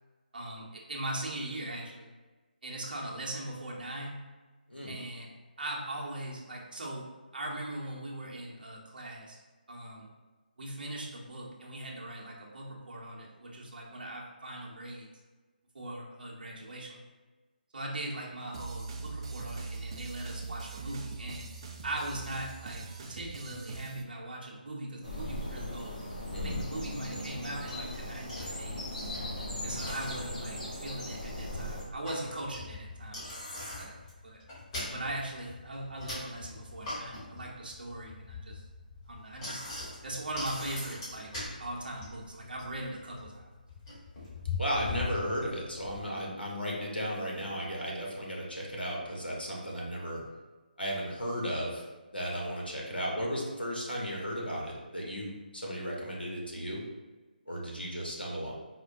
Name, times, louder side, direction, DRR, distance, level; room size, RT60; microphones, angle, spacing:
voice 1, 0.3-2.1 2.6-4.2 4.9-5.3 5.6-7.1 7.3-9.4 9.7-10.1 10.6-15.1 15.7-17.0 17.7-21.5 21.8-26.0 26.4-28.8 29.6-33.3 33.8-33.9 34.2-34.4 34.8-38.6 39.1-39.6 40.0-41.3 41.6-43.5, right 1 dB, 65° right, -3 dB, 0.7 m, -40 dB
sound 1, 18.5-24.0, right 4 dB, 30° right, 0.3 m, -41 dB
sound 2, 25.0-31.8, left 1 dB, 50° left, 1.4 m, -38 dB
Bicycle, 27.2-46.0, left 2 dB, 30° left, 1.4 m, -42 dB
voice 2, 44.6-50.2 50.8-56.8 57.5-58.5, equal, 90° left, -3 dB, 1.0 m, -35 dB
4.3 x 2.1 x 2.6 m, 1.3 s
figure-of-eight pair, 150°, 5 cm